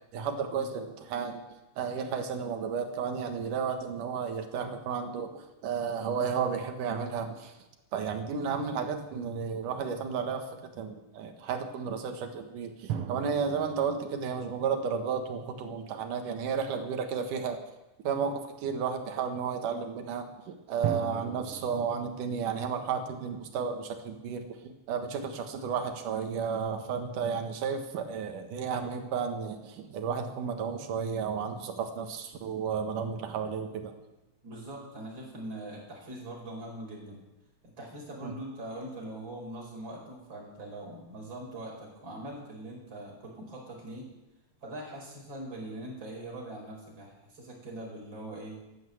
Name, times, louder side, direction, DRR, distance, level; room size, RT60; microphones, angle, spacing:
voice 1, 0.1-1.4 1.8-7.5 7.9-17.6 18.0-33.9 38.2-38.3, right 6 dB, 85° right, 6 dB, 3.0 m, -33 dB
sound 1, 12.9-15.6 20.8-23.8, right 9 dB, 65° right, 1.4 m, -40 dB
voice 2, 34.4-37.2 37.6-44.1 44.6-48.6, right 1 dB, 35° right, -2 dB, 5.3 m, -42 dB
14.5 x 10.5 x 7.8 m, 1.0 s
omnidirectional pair, 3.5 m